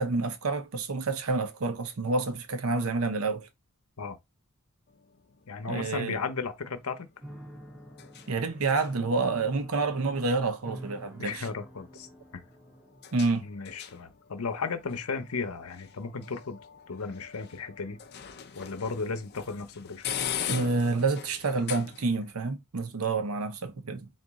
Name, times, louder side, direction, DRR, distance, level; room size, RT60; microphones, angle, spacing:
voice 1, 0.0-3.5 5.7-6.2 8.3-11.5 13.1-13.4 20.5-24.1, right 3 dB, 70° right, 0.7 m, -28 dB
sound 1, 4.9-22.3, left 9 dB, 50° left, 0.5 m, -43 dB
voice 2, 5.5-7.1 11.2-12.1 12.3-12.4 13.4-16.6 16.9-18.0 18.5-20.0, left 4 dB, 80° left, 0.8 m, -35 dB
Piano, 7.2-13.1, right 1 dB, 5° right, 0.7 m, -47 dB
4.0 x 2.4 x 3.6 m
head